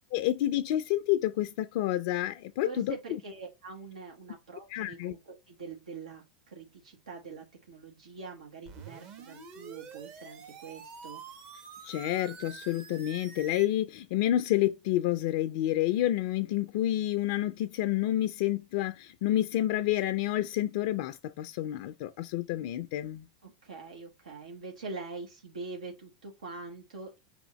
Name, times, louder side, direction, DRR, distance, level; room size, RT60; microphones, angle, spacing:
voice 1, 0.1-3.0 4.7-5.1 11.8-23.3, left 13 dB, 60° left, 0.4 m, -29 dB
voice 2, 2.6-11.2 23.4-27.2, right 4 dB, 85° right, 1.0 m, -44 dB
sound 1, 8.7-13.7, right 6 dB, 45° right, 1.1 m, -47 dB
4.8 x 3.5 x 2.9 m
hypercardioid pair, 105°, 4 cm